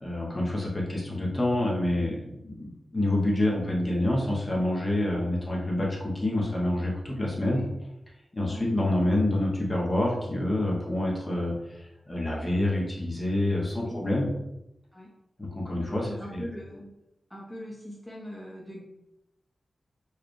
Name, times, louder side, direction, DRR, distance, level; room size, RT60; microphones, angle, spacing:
voice 1, 0.0-7.6 8.3-14.3 15.4-16.4, left 1 dB, 25° left, -3 dB, 1.0 m, -27 dB
voice 2, 15.9-16.9 17.3-18.8, equal, ahead, -5 dB, 0.8 m, -40 dB
4.7 x 2.3 x 3.2 m, 0.90 s
wide cardioid pair, 85°, 0 cm